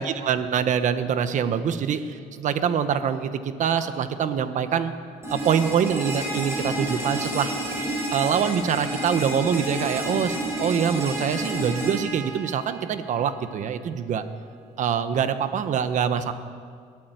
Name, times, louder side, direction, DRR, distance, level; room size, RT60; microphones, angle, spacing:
voice 1, 0.0-4.9 5.3-7.5 8.1-14.2 14.8-16.3, right 7 dB, 60° right, 10 dB, 1.3 m, -25 dB
sound 1, 5.2-13.2, right 1 dB, 20° right, 7.8 m, -30 dB
21.5 x 13.5 x 9.3 m, 2.1 s
cardioid pair, 120°, 14 cm